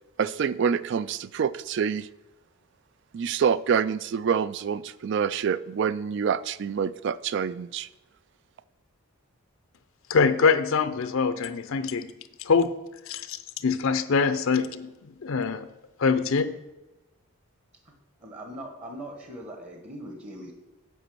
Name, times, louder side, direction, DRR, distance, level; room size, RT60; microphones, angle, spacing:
voice 1, 0.2-2.1 3.1-7.9, right 7 dB, 55° right, 18 dB, 0.3 m, -26 dB
voice 2, 10.1-12.1 12.4-12.7 13.1-14.9 15.2-15.7 16.0-16.5, left 5 dB, 65° left, 12 dB, 0.5 m, -24 dB
voice 3, 18.2-20.5, right 1 dB, 30° right, 3 dB, 1.1 m, -40 dB
8.1 x 5.1 x 7.6 m, 1.1 s
head